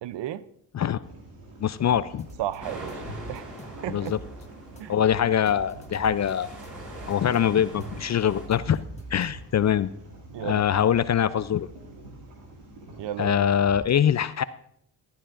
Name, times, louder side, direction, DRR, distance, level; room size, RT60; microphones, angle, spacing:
voice 1, 0.0-0.4 2.4-3.0 3.3-3.5 3.8-4.1 4.8-5.0 10.3-10.7 13.0-13.4, right 12 dB, 60° right, 16 dB, 0.6 m, -33 dB
sound 1, 1.0-13.8, right 2 dB, 90° right, 2.3 m, -45 dB
voice 2, 1.6-2.3 3.9-4.2 4.9-6.5 7.1-8.8 9.1-9.9 10.4-11.7 13.2-14.4, left 9 dB, 35° left, 16 dB, 0.4 m, -23 dB
sound 2, 2.2-2.6 2.9-4.5 4.8-6.3 6.6-9.7, left 1 dB, 15° left, 1.5 m, -47 dB
sound 3, 2.6-8.5, right 1 dB, 35° right, 5.4 m, -43 dB
14.5 x 11.5 x 2.5 m, 0.69 s
supercardioid pair, 50°, 48 cm